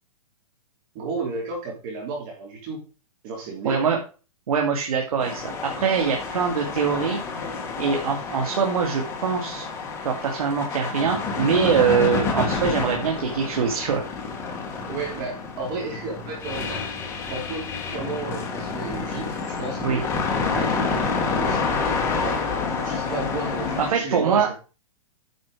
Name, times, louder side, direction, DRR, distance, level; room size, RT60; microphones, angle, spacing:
voice 1, 0.9-2.8 3.2-3.9 14.9-16.8 17.3-20.1 20.5-21.9 22.2-22.5 22.8-24.6, right 4 dB, 35° right, 0 dB, 3.3 m, -33 dB
voice 2, 3.6-4.0 4.5-7.2 7.8-9.7 10.0-14.0 19.8-20.0 23.8-24.5, right 6 dB, 80° right, 1 dB, 2.4 m, -23 dB
sound 1, 5.2-23.9, left 4 dB, 15° left, 1.7 m, -28 dB
9.4 x 5.5 x 4.9 m, 0.33 s
hypercardioid pair, 165°, 19 cm